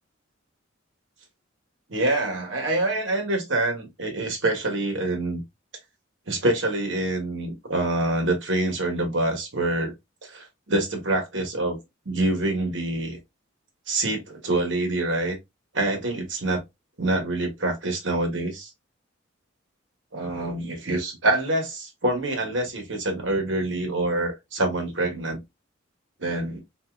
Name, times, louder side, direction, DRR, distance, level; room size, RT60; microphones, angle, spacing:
voice 1, 1.9-5.4 6.3-9.9 10.2-11.8 12.0-13.2 13.9-15.4 15.7-16.6 17.0-18.7 20.1-25.4 26.2-26.6, right 2 dB, 65° right, 1.2 m, -26 dB
3.5 x 2.7 x 2.3 m
head